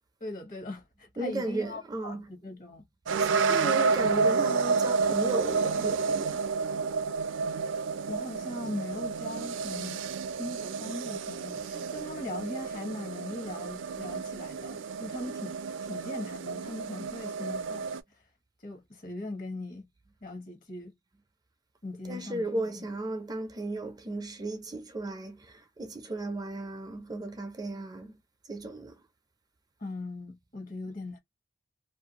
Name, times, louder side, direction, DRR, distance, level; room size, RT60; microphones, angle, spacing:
voice 1, 0.2-2.9 8.1-10.1 10.4-15.6 15.9-17.9 18.6-19.9 20.2-20.9 21.8-22.5 22.8-22.9 29.8-31.2, left 2 dB, 50° left, 1.2 m, -40 dB
voice 2, 1.2-2.3 3.2-6.5 22.1-28.1 28.5-29.0, right 2 dB, 20° right, 0.5 m, -35 dB
sound 1, 3.1-18.0, right 5 dB, 85° right, 0.4 m, -30 dB
2.5 x 2.3 x 2.8 m
head